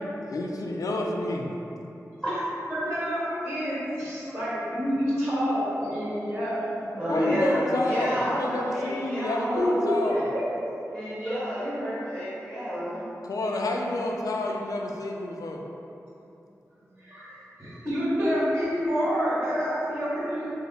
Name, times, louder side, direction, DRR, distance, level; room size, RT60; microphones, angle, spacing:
voice 1, 0.3-1.5 7.1-10.3 13.2-15.6, left 2 dB, 75° left, 0 dB, 0.3 m, -29 dB
voice 2, 2.7-7.3 9.5-10.4 11.2-11.4 17.0-20.5, equal, 45° right, -10 dB, 1.5 m, -28 dB
voice 3, 6.9-9.8 10.1-10.2 10.9-13.0, equal, 15° right, -11 dB, 0.8 m, -30 dB
2.8 x 2.0 x 4.0 m, 2.8 s
wide cardioid pair, 85°, 6 cm